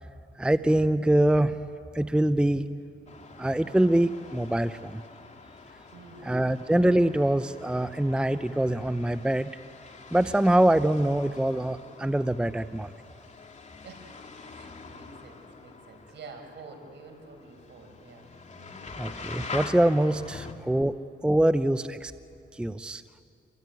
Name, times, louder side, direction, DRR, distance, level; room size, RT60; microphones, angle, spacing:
voice 1, 0.4-1.6 1.9-2.7 3.4-5.0 6.2-9.5 10.1-12.9 19.0-22.1 22.5-23.0, right 1 dB, 5° right, 12 dB, 0.6 m, -24 dB
sound 1, 3.1-20.5, left 4 dB, 35° left, 2.7 m, -45 dB
voice 2, 5.9-6.6 13.8-18.3, right 4 dB, 60° right, 4 dB, 5.7 m, -48 dB
27.5 x 23.0 x 9.5 m, 2.4 s
cardioid pair, 90°, 20 cm